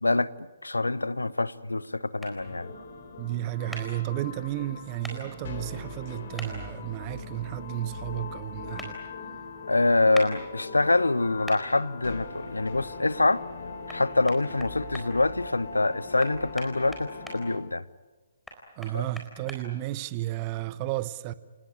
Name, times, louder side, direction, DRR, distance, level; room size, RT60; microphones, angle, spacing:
voice 1, 0.0-2.7 9.7-13.4 13.9-17.8 18.9-19.1, left 2 dB, 75° left, 0.8 m, -25 dB
sound 1, 2.2-2.3 3.7-3.8 5.0-5.2 6.4-6.5 8.8-8.9 10.1-10.3 11.5-11.6 13.9-14.0 14.3-15.1 16.2-17.4 18.5-19.6, equal, ahead, 4.1 m, -40 dB
sound 2, 2.4-17.6, left 4 dB, 50° left, 3.6 m, -40 dB
voice 2, 3.2-9.0 18.8-21.3, right 15 dB, 30° right, 1.0 m, -33 dB
28.5 x 19.0 x 9.6 m
figure-of-eight pair, 130°, 0 cm